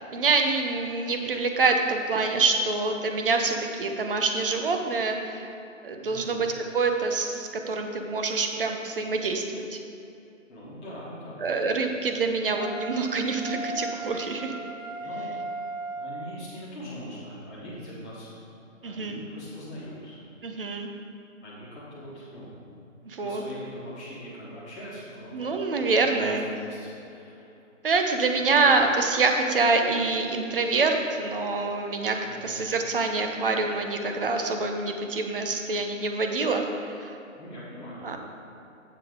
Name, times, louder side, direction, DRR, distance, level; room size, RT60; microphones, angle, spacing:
voice 1, 0.0-5.5 5.8-9.5 9.7-9.8 11.4-14.5 18.8-19.2 20.4-20.9 23.0-23.4 25.3-26.5 27.8-36.6 37.0-37.2 38.0-38.2, right 3 dB, 45° right, 4 dB, 0.8 m, -26 dB
voice 2, 6.0-6.4 10.5-11.5 15.0-15.3 16.0-18.4 18.8-20.2 21.4-25.5 25.8-27.6 32.2-32.5 37.3-38.2, equal, 5° left, -13 dB, 0.8 m, -42 dB
Wind instrument woodwind instrument, 12.6-16.3, right 2 dB, 80° right, 1.0 m, -36 dB
10.0 x 7.0 x 3.7 m, 2.7 s
hypercardioid pair, 170°, 39 cm